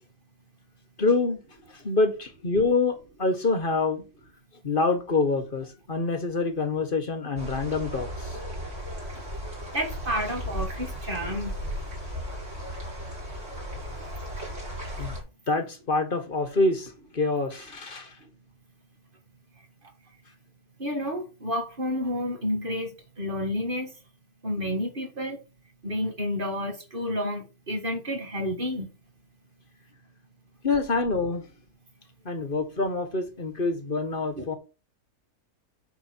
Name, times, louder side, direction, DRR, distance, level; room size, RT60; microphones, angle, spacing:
voice 1, 1.0-1.4 1.8-4.0 4.6-8.4 15.0-15.2 15.5-18.1 30.6-31.5 32.2-34.6, left 3 dB, 35° left, 1.7 m, -26 dB
sound 1, 7.4-15.2, equal, 50° right, 5.3 m, -35 dB
voice 2, 9.7-11.5 18.2-18.3 20.8-23.9 24.4-25.4 25.8-28.9 34.4-34.5, equal, 35° right, 2.0 m, -30 dB
9.2 x 6.9 x 4.5 m
omnidirectional pair, 1.6 m